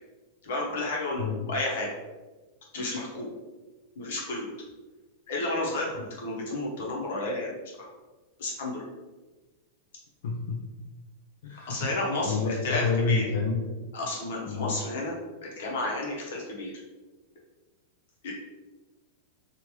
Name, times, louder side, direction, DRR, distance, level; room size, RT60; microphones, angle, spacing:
voice 1, 0.4-1.9 2.7-3.3 4.0-4.5 5.3-7.5 7.8-7.9 8.4-8.8 11.7-13.3 13.9-15.1 15.4-16.7 18.2-18.3, left 2 dB, 65° left, -2 dB, 0.9 m, -31 dB
voice 2, 1.2-1.5 10.2-10.6 11.4-11.8 12.2-13.9 14.5-14.7, left 4 dB, 80° left, -1 dB, 0.4 m, -29 dB
3.0 x 2.5 x 3.1 m, 1.2 s
supercardioid pair, 180°, 0 cm